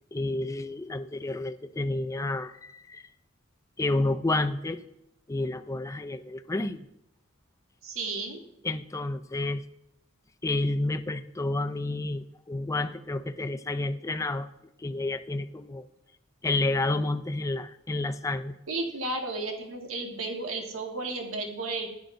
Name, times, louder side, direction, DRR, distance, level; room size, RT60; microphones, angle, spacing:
voice 1, 0.1-3.0 3.8-4.8 5.3-6.9 8.6-9.6 10.4-14.5 14.8-15.8 16.4-18.6, left 2 dB, 15° left, 9 dB, 0.4 m, -30 dB
voice 2, 7.8-8.4 18.7-21.9, right 2 dB, 65° right, 2 dB, 1.5 m, -33 dB
14.5 x 10.5 x 2.6 m, 0.83 s
head